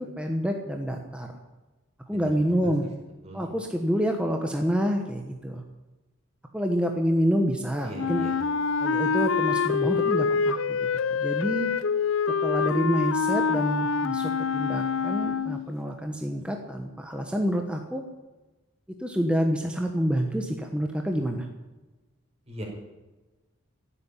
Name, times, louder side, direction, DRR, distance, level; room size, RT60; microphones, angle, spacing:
voice 1, 0.0-1.3 2.1-2.9 3.3-5.6 6.5-8.3 8.8-10.8 11.1-11.7 12.4-18.0 19.0-21.5, equal, 5° right, 3 dB, 1.2 m, -27 dB
voice 2, 7.8-8.3 22.5-22.6, right 1 dB, 30° right, 0 dB, 4.6 m, -39 dB
Wind instrument woodwind instrument, 8.0-15.7, left 5 dB, 80° left, 0.6 m, -26 dB
16.0 x 8.6 x 9.9 m, 1.2 s
head